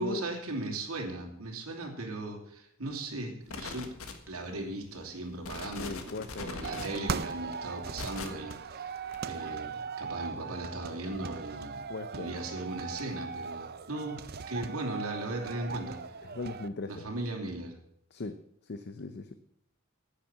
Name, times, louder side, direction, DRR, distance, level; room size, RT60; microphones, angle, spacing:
voice 1, 0.0-3.9 4.3-11.8 12.1-14.2 14.5-16.0 16.9-17.8, right 2 dB, 85° right, 1 dB, 2.9 m, -37 dB
sound 1, 3.5-4.5 5.0-5.1 5.4-8.5 9.1-9.2, left 3 dB, 75° left, 1.6 m, -40 dB
voice 2, 5.8-6.6 11.9-12.4 16.2-17.1 18.1-18.4 18.6-19.3, left 3 dB, 50° left, 10 dB, 0.6 m, -39 dB
sound 2, 6.6-16.7, right 5 dB, 45° right, 0.6 m, -39 dB
10.0 x 9.2 x 7.3 m, 0.74 s
head